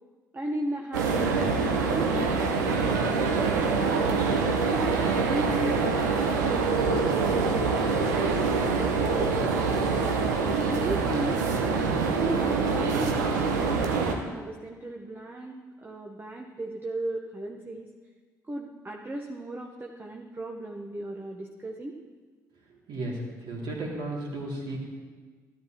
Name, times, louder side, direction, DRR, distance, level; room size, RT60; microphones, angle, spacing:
voice 1, 0.3-3.0 3.6-4.1 4.5-8.3 8.8-9.8 10.5-11.4 11.8-17.9 18.5-22.0, right 2 dB, 20° right, 0 dB, 1.0 m, -36 dB
sound 1, 0.9-14.1, right 4 dB, 80° right, 0.9 m, -25 dB
voice 2, 22.7-24.8, right 1 dB, 55° right, -2 dB, 2.4 m, -34 dB
13.0 x 11.0 x 2.9 m, 1.5 s
figure-of-eight pair, 50°, 9 cm